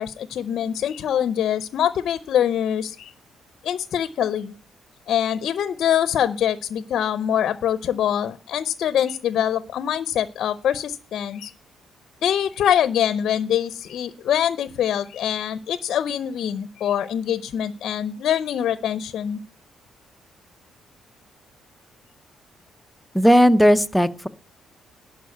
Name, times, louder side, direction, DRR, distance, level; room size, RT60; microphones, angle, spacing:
voice 1, 0.0-3.1 3.6-4.5 5.1-11.5 12.2-19.4, left 9 dB, 70° left, 13 dB, 0.6 m, -24 dB
voice 2, 23.1-24.3, equal, 5° left, 9 dB, 0.6 m, -16 dB
11.0 x 4.7 x 8.0 m, 0.39 s
cardioid pair, 90°, 0 cm